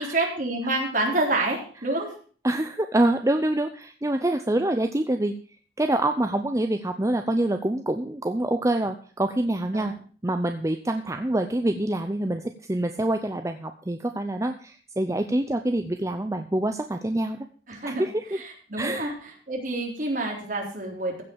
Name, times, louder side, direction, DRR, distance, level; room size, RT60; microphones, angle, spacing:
voice 1, 0.0-2.1 9.7-9.9 17.7-18.0 18.3-19.1 19.5-21.2, right 2 dB, 50° right, 0 dB, 3.8 m, -27 dB
voice 2, 2.4-5.3 5.8-9.9 10.2-17.4 17.8-18.4 18.8-19.1, right 1 dB, 20° right, 7 dB, 0.6 m, -26 dB
15.5 x 5.6 x 7.2 m, 0.43 s
head